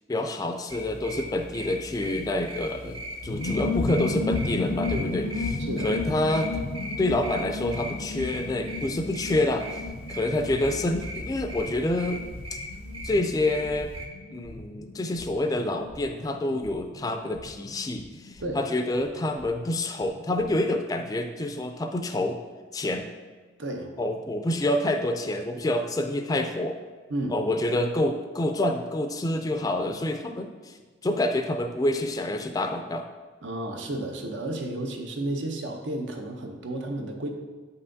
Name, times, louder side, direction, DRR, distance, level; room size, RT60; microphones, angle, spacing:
voice 1, 0.1-6.7 7.0-9.7 10.1-12.2 13.0-13.9 14.3-22.4 22.7-23.1 24.0-26.8 27.3-30.7 31.0-33.1, left 1 dB, 20° left, 5 dB, 0.3 m, -27 dB
sound 1, 0.7-14.1, equal, 30° right, 0.6 m, -39 dB
sound 2, 3.2-19.5 19.8-19.9 20.1-20.5, left 3 dB, 80° left, 0.5 m, -34 dB
voice 2, 5.6-5.9 18.4-18.6 23.6-23.9 27.1-27.4 33.4-37.3, right 1 dB, 85° right, 3 dB, 0.8 m, -32 dB
7.7 x 5.5 x 2.7 m, 1.4 s
head